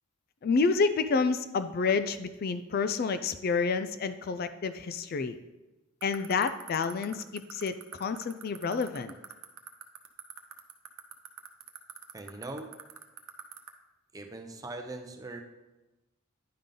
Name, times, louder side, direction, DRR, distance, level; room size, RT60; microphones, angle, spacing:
voice 1, 0.4-5.4 6.0-9.1, left 4 dB, 45° left, 11 dB, 0.3 m, -29 dB
sound 1, 6.0-13.7, right 10 dB, 80° right, 0.8 m, -42 dB
voice 2, 12.1-12.8 14.1-15.4, right 2 dB, 15° right, 5 dB, 0.6 m, -41 dB
10.5 x 5.3 x 3.8 m, 1.0 s
head